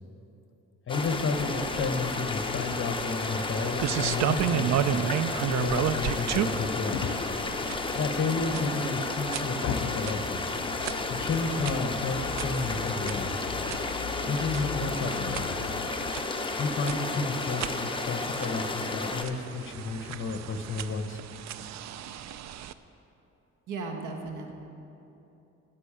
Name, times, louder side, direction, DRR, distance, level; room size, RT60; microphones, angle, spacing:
voice 1, 0.9-7.0 7.9-10.4 11.2-13.3 14.3-15.6 16.6-21.2, left 3 dB, 40° left, 7 dB, 1.1 m, -32 dB
sound 1, 0.9-19.2, left 3 dB, 15° left, 0.9 m, -32 dB
sound 2, 1.0-16.1, left 10 dB, 75° left, 0.6 m, -40 dB
sound 3, 2.8-22.7, right 10 dB, 65° right, 0.5 m, -34 dB
voice 2, 23.7-24.5, right 3 dB, 85° right, 3 dB, 1.5 m, -36 dB
9.9 x 7.5 x 8.6 m, 2.9 s
cardioid pair, 90°, 30 cm